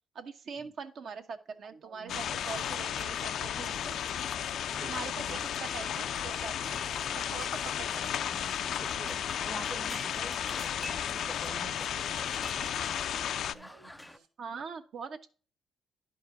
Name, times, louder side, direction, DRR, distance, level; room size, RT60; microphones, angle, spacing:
voice 1, 0.1-4.2 4.8-6.7 7.2-8.2 14.4-15.3, right 5 dB, 65° right, 5 dB, 1.0 m, -43 dB
sound 1, 1.6-14.3, right 6 dB, 80° right, 1.3 m, -56 dB
sound 2, 2.1-13.5, left 9 dB, 70° left, 0.4 m, -34 dB
sound 3, 6.7-14.2, left 1 dB, 5° left, 0.3 m, -48 dB
voice 2, 8.7-12.5, right 2 dB, 25° right, 9 dB, 0.8 m, -47 dB
11.0 x 5.3 x 3.9 m, 0.39 s
cardioid pair, 90°, 0 cm